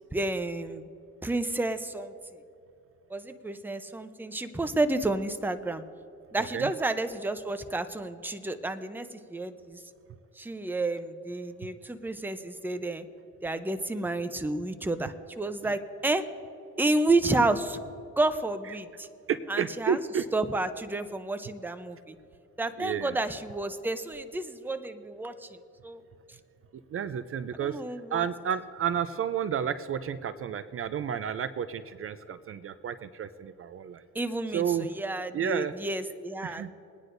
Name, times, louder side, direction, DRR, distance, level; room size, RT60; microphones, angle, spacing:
voice 1, 0.1-0.9 1.2-2.1 3.1-5.8 6.3-9.8 10.4-13.1 13.4-16.3 16.8-17.8 18.2-19.1 19.5-20.0 20.3-22.2 22.6-26.0 27.6-28.2 34.1-36.7, right 2 dB, 5° right, 10 dB, 0.6 m, -30 dB
voice 2, 6.4-6.7 15.6-15.8 19.3-20.3 22.8-23.1 26.9-27.8 28.1-34.0 34.5-34.9 35.3-35.7 36.4-36.7, right 8 dB, 45° right, 13 dB, 0.5 m, -31 dB
23.0 x 9.7 x 2.6 m, 2.8 s
cardioid pair, 90°, 30 cm